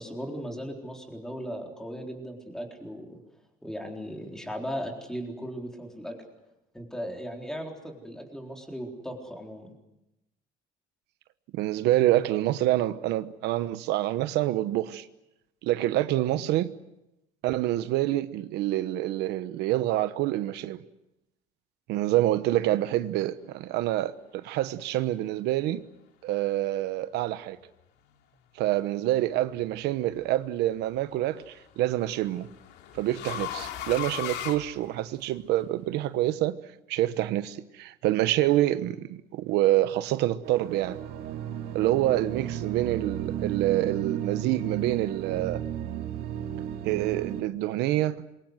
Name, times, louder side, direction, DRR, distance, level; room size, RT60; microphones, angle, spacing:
voice 1, 0.0-3.2 3.6-6.2 6.7-9.7, equal, 5° left, 4.0 m, -37 dB
voice 2, 11.5-15.1 15.6-16.7 17.4-20.8 21.9-25.8 26.2-27.6 28.6-32.5 32.9-36.6 36.9-41.0 41.7-45.6 46.8-48.2, right 14 dB, 80° right, 1.1 m, -27 dB
sound 1, 29.5-30.0 31.4-35.4, left 11 dB, 80° left, 2.5 m, -38 dB
sound 2, 40.4-47.4, right 10 dB, 65° right, 2.5 m, -34 dB
27.0 x 23.5 x 7.9 m
cardioid pair, 175°, 17 cm